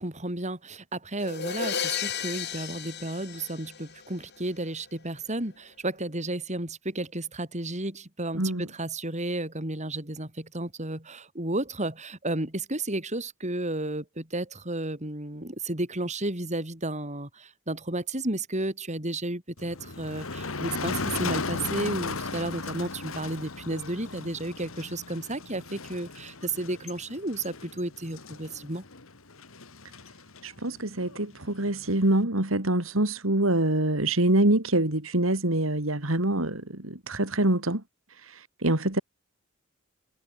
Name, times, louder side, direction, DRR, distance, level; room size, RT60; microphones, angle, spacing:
voice 1, 0.0-28.8, right 2 dB, 35° right, 6.1 m, -32 dB
sound 1, 1.2-4.2, left 7 dB, 55° left, 6.1 m, -33 dB
voice 2, 8.3-8.7 30.4-37.8 38.2-39.0, right 1 dB, 75° right, 3.2 m, -25 dB
Motor vehicle (road), 19.6-32.2, left 3 dB, 80° left, 2.2 m, -37 dB
head